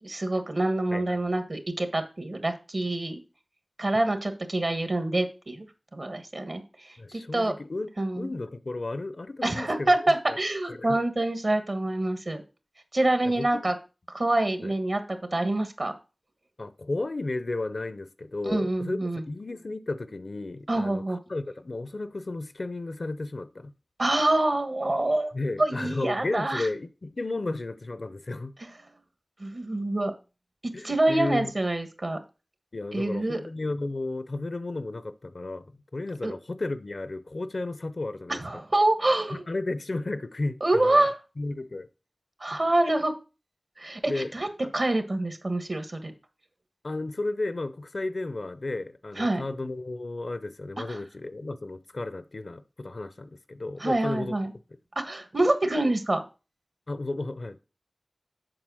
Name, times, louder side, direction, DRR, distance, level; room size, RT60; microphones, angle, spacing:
voice 1, 0.0-3.2 3.8-5.6 5.9-7.5 8.0-8.3 9.4-12.4 12.9-13.7 14.1-15.9 18.4-19.2 20.7-21.2 24.0-25.3 25.6-26.7 29.4-30.1 30.6-32.2 32.9-33.4 36.2-36.3 38.4-39.4 40.6-41.1 42.4-43.1 43.8-44.5 44.7-46.1 49.2-49.4 50.9-51.0 53.8-54.5 54.9-56.2, right 2 dB, 65° right, 1.4 m, -26 dB
voice 2, 0.9-1.4 7.0-10.4 10.7-11.0 13.2-13.6 14.6-14.7 16.6-23.7 25.3-28.5 30.7-31.5 32.7-38.6 39.3-41.0 41.4-41.9 42.5-42.6 44.0-44.3 44.6-44.7 46.8-54.3 56.9-57.6, left 2 dB, 75° left, 0.7 m, -33 dB
7.8 x 4.8 x 6.3 m
wide cardioid pair, 50°, 0 cm